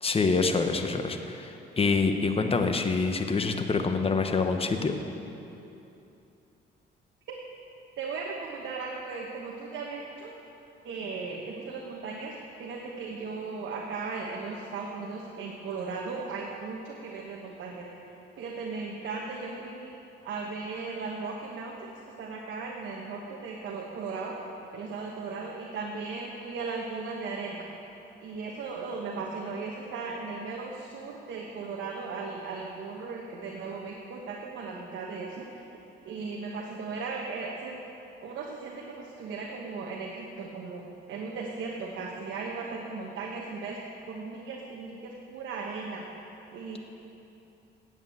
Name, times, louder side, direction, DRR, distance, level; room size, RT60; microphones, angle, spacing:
voice 1, 0.0-4.9, left 4 dB, 30° left, 6 dB, 1.0 m, -26 dB
voice 2, 8.0-10.3 10.8-17.9 18.4-19.9 20.2-21.9 22.2-24.4 24.7-27.7 28.2-35.7 36.0-37.8 38.2-43.8 44.1-46.0 46.5-46.8, right 4 dB, 75° right, -1 dB, 1.2 m, -37 dB
9.6 x 8.1 x 7.8 m, 2.9 s
cardioid pair, 90°, 20 cm